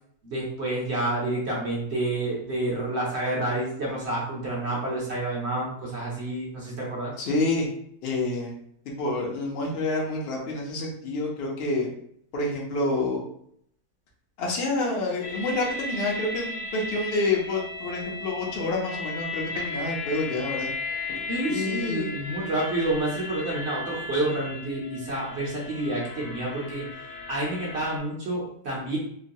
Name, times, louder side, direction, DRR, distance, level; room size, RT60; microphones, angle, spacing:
voice 1, 0.2-7.1 21.3-26.9 27.3-29.0, right 2 dB, 55° right, -4 dB, 0.9 m, -29 dB
voice 2, 7.2-7.7 8.0-8.5 9.0-11.9 12.3-13.2 14.4-20.7 21.5-22.1, left 2 dB, 50° left, -2 dB, 0.8 m, -28 dB
sound 1, 15.2-28.0, left 3 dB, 70° left, 1.1 m, -36 dB
3.0 x 2.1 x 2.6 m, 0.67 s
omnidirectional pair, 1.6 m